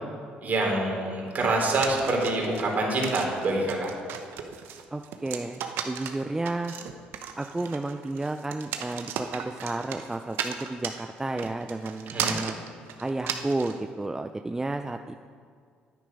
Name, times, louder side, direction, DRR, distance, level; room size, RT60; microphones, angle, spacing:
voice 1, 0.4-3.9 12.1-12.3, right 2 dB, 50° right, -1 dB, 3.1 m, -26 dB
sound 1, 1.7-13.8, right 8 dB, 70° right, 0.8 m, -35 dB
voice 2, 4.9-6.7 7.4-12.6 13.0-15.2, right 2 dB, 15° right, 6 dB, 0.4 m, -32 dB
10.0 x 9.3 x 5.3 m, 2.1 s
supercardioid pair, 70°, 4 cm